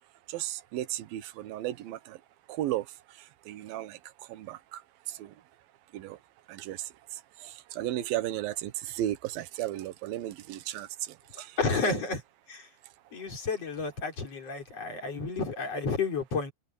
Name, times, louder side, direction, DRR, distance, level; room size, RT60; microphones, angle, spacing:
voice 1, 0.3-2.2 2.5-2.9 3.1-4.0 4.3-4.8 5.1-5.3 5.9-6.2 6.5-12.0, right 13 dB, 75° right, 2.1 m, -35 dB
voice 2, 11.4-12.2 12.5-12.7 13.1-16.5, left 4 dB, 35° left, 5.0 m, -31 dB
omnidirectional pair, 5.6 m